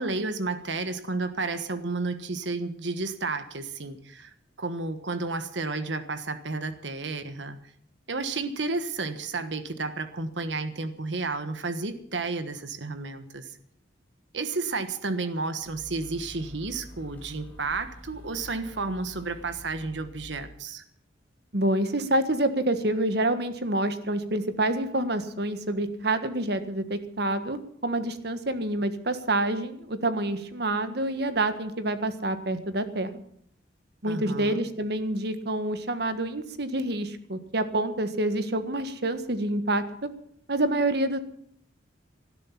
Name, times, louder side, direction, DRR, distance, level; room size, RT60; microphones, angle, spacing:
voice 1, 0.0-7.6 8.1-13.6 14.3-20.8 34.1-34.6, right 3 dB, 75° right, 10 dB, 1.3 m, -32 dB
sound 1, 15.6-20.5, equal, 10° left, 5.2 m, -47 dB
voice 2, 21.5-33.2 34.0-40.1 40.5-41.2, right 1 dB, 60° right, 10 dB, 1.5 m, -27 dB
18.5 x 12.5 x 5.9 m, 0.65 s
head